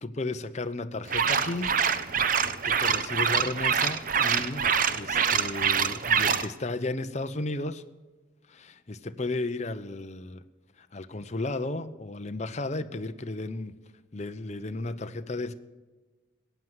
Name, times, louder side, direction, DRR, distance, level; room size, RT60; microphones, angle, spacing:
voice 1, 0.0-1.8 2.6-4.7 4.9-7.8 8.5-10.4 10.8-13.8 14.1-15.5, left 2 dB, 35° left, 0.7 m, -34 dB
sound 1, 1.1-6.5, right 7 dB, 45° right, 0.7 m, -25 dB
15.5 x 9.2 x 8.0 m
head